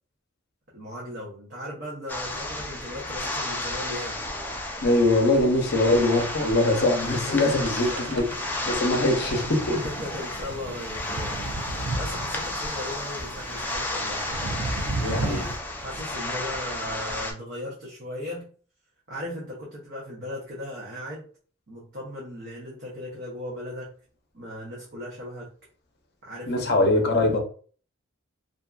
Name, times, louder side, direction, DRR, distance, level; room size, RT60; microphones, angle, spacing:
voice 1, 0.7-4.2 7.2-8.1 9.8-11.4 11.6-14.2 15.0-18.5 19.1-21.3 21.7-23.9 24.3-25.5 26.2-26.9, left 1 dB, 55° right, 0.7 m, -37 dB
sound 1, 2.1-17.3, left 2 dB, 10° left, 0.3 m, -32 dB
voice 2, 4.8-9.8 15.0-15.5 26.5-27.4, left 2 dB, 50° left, 0.6 m, -22 dB
sound 2, 5.9-15.6, right 2 dB, 85° right, 0.5 m, -35 dB
2.6 x 2.4 x 2.3 m
head